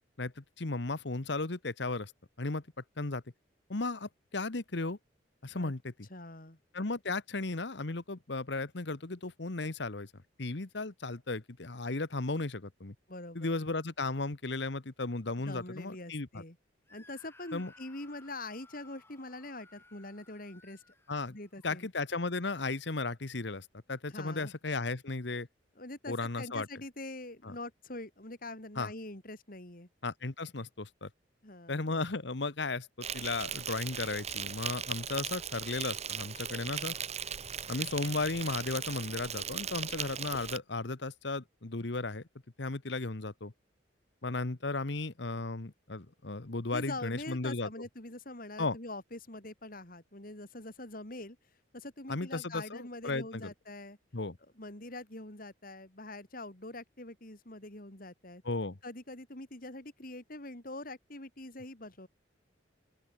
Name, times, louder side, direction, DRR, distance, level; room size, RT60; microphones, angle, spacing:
voice 1, 0.2-2.1 2.4-2.6 3.0-3.2 3.7-5.0 5.4-6.1 6.7-10.1 10.4-12.9 13.3-16.4 17.5-17.7 21.1-21.4 21.6-25.5 26.1-26.7 27.4-27.5 28.8-28.9 30.0-31.1 31.7-36.9 37.7-42.2 42.6-43.5 44.2-47.7 48.6-48.8 52.1-53.5 54.1-54.4 58.4-58.8, left 3 dB, 65° left, 1.2 m, -35 dB
voice 2, 6.1-6.6 13.1-13.6 15.4-16.6 16.9-20.8 21.2-21.9 24.1-24.5 25.8-29.9 31.4-31.8 46.7-51.4 51.7-54.0 54.6-58.4 58.8-62.1, left 2 dB, 50° left, 3.6 m, -44 dB
Screaming, 16.9-21.7, left 2 dB, 15° left, 4.2 m, -60 dB
Insect, 33.0-40.6, right 8 dB, 35° right, 1.6 m, -38 dB
open air
head